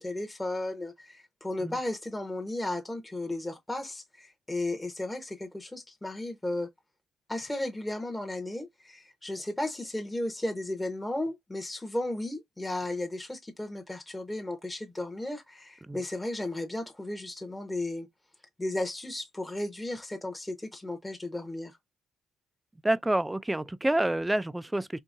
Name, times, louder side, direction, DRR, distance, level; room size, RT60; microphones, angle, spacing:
voice 1, 0.0-6.7 7.3-18.1 18.6-21.8, left 1 dB, 10° left, 0.8 m, -34 dB
voice 2, 22.8-25.0, right 1 dB, 10° right, 0.3 m, -28 dB
3.9 x 2.7 x 2.5 m
cardioid pair, 90°, 0 cm